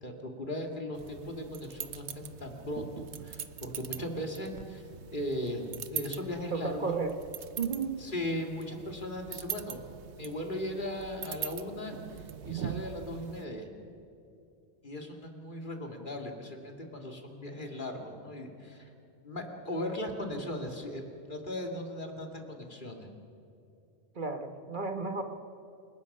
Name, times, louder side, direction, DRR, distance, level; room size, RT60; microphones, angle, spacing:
voice 1, 0.0-5.7 5.9-7.0 8.0-9.8 10.2-13.7 14.8-18.8 19.2-21.0 21.3-23.1, left 1 dB, 50° left, 2 dB, 2.6 m, -38 dB
sound 1, 1.0-13.4, right 9 dB, 85° right, 1.1 m, -42 dB
voice 2, 6.5-7.2 7.6-8.1 24.1-25.2, right 4 dB, 50° right, 6 dB, 1.4 m, -33 dB
29.0 x 18.5 x 5.6 m, 2.6 s
omnidirectional pair, 1.1 m